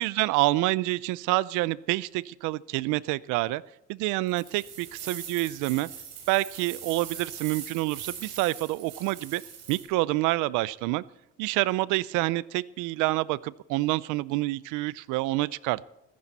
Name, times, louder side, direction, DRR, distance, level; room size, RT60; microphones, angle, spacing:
voice 1, 0.0-3.6 3.9-5.9 6.3-9.4 9.7-11.0 11.4-15.8, right 19 dB, 85° right, 21 dB, 0.5 m, -27 dB
sound 1, 4.3-9.8, right 8 dB, 55° right, 5.7 m, -42 dB
15.0 x 15.0 x 4.1 m, 0.90 s
cardioid pair, 150°, 30 cm